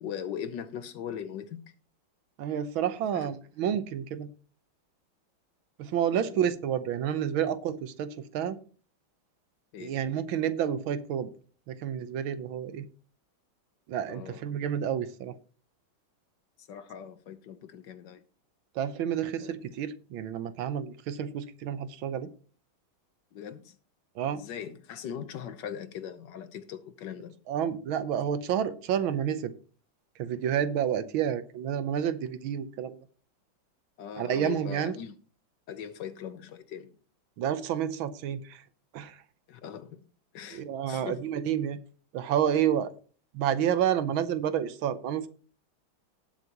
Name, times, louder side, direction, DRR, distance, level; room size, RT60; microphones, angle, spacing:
voice 1, 0.0-1.7 3.1-3.3 9.7-10.0 14.1-14.4 16.7-18.2 19.4-19.5 23.3-23.8 24.3-27.3 34.0-35.1 35.7-36.9 39.5-40.0 40.3-41.2, left 8 dB, 65° left, 1.4 m, -40 dB
voice 2, 2.4-4.3 5.8-8.6 9.8-11.3 11.7-12.9 13.9-15.4 18.8-22.3 24.2-24.4 27.5-29.5 30.2-33.0 34.2-35.0 37.4-38.6 38.9-39.2 40.5-41.8 42.1-42.9 43.3-45.3, right 9 dB, 80° right, 1.6 m, -29 dB
19.0 x 7.2 x 3.0 m
omnidirectional pair, 2.3 m